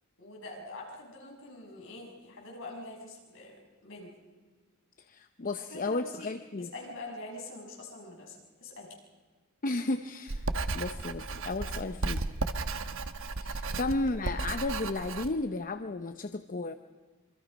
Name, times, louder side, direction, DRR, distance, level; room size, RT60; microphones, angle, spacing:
voice 1, 0.2-3.6 3.8-4.1 5.7-6.3 6.6-8.9 13.7-13.9, left 2 dB, 60° left, -1 dB, 6.2 m, -44 dB
voice 2, 5.1-6.7 9.6-10.5 10.7-12.2 13.4-16.7, left 2 dB, 40° left, 9 dB, 0.7 m, -33 dB
Writing, 10.3-15.3, right 3 dB, 65° right, 1.1 m, -34 dB
26.5 x 24.0 x 5.3 m, 1.4 s
head